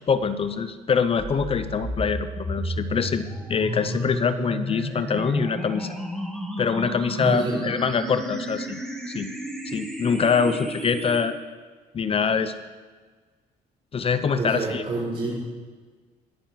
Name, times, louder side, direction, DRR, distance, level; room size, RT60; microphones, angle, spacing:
voice 1, 0.1-5.9 6.6-8.8 9.1-9.3 9.7-11.3 11.9-12.5 13.9-14.8, left 6 dB, 35° left, 12 dB, 0.7 m, -24 dB
sound 1, 1.2-11.2, equal, 5° left, 3.0 m, -33 dB
voice 2, 7.2-7.6 14.3-15.4, right 3 dB, 40° right, -10 dB, 5.0 m, -27 dB
19.0 x 7.1 x 5.8 m, 1.4 s
cardioid pair, 110°, 17 cm